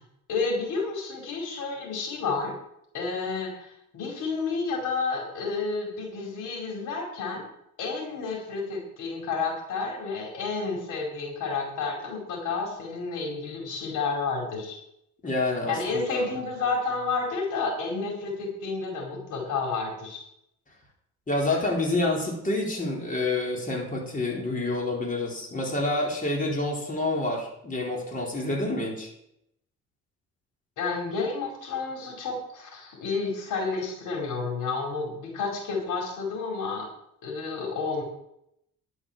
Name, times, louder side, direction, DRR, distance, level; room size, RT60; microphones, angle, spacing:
voice 1, 0.3-2.5 2.9-7.4 7.8-14.8 15.7-20.2 30.8-36.9 37.2-38.0, left 4 dB, 85° left, -1 dB, 4.9 m, -30 dB
voice 2, 15.2-16.2 21.3-29.1, left 2 dB, 25° left, -2 dB, 4.2 m, -28 dB
11.5 x 7.2 x 7.4 m, 0.76 s
cardioid pair, 90°, 30 cm